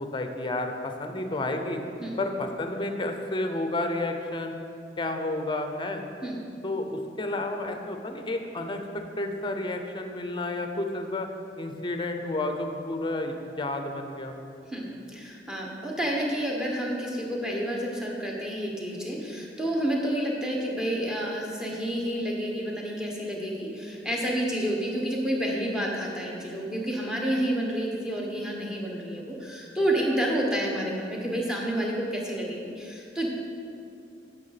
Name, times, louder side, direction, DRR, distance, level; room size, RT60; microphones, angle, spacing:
voice 1, 0.0-1.8 2.2-4.5 5.0-6.0 6.6-11.3 11.6-14.4, left 2 dB, 30° left, 5 dB, 0.7 m, -31 dB
voice 2, 14.7-33.3, right 1 dB, 5° right, -2 dB, 1.3 m, -29 dB
9.4 x 6.4 x 5.9 m, 2.6 s
head